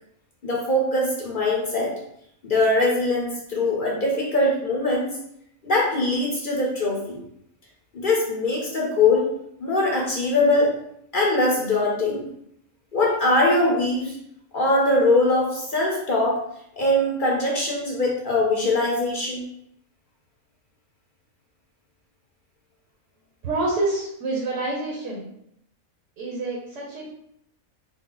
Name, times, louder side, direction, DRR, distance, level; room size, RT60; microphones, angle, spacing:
voice 1, 0.4-1.9 2.4-5.2 5.6-7.2 7.9-9.3 9.6-10.7 11.1-12.3 12.9-14.1 14.5-16.4 16.8-19.4, left 2 dB, 45° left, -3 dB, 0.7 m, -22 dB
voice 2, 23.4-25.3 26.2-27.2, right 2 dB, 60° right, -3 dB, 1.1 m, -27 dB
3.9 x 2.0 x 3.7 m, 0.75 s
omnidirectional pair, 1.5 m